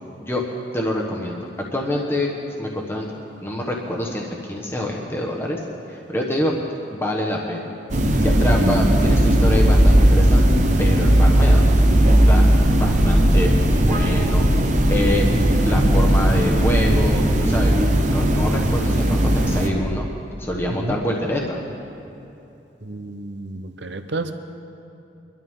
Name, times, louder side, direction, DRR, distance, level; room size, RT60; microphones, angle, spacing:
voice 1, 0.7-2.3 2.6-3.1 3.4-5.6 5.9-6.5 6.9-7.7 8.2-11.7 12.1-12.4 12.8-13.5 13.8-14.4 14.9-15.3 15.6-17.7 18.1-20.0 20.4-21.6, left 1 dB, 15° left, -2 dB, 1.2 m, -26 dB
sound 1, 7.9-19.7, right 1 dB, 40° right, 1.0 m, -17 dB
voice 2, 22.8-24.3, right 2 dB, 70° right, 8 dB, 0.8 m, -31 dB
23.5 x 12.5 x 3.7 m, 2.7 s
head